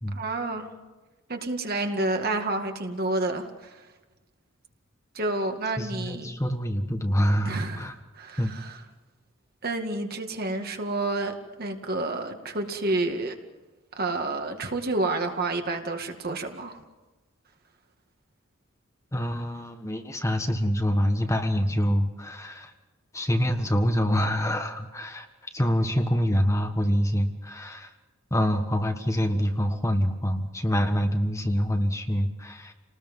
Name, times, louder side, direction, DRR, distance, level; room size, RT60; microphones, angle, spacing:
voice 1, 0.1-0.7 1.3-3.9 5.1-6.3 7.4-7.9 8.1-8.8 9.6-13.3 14.0-16.8, right 2 dB, 50° right, 4 dB, 2.2 m, -29 dB
voice 2, 5.8-7.9 8.4-8.5 19.1-22.7 23.1-25.2 25.5-27.9 28.3-32.7, equal, 15° left, 5 dB, 1.5 m, -26 dB
30.0 x 19.5 x 5.5 m, 1.2 s
head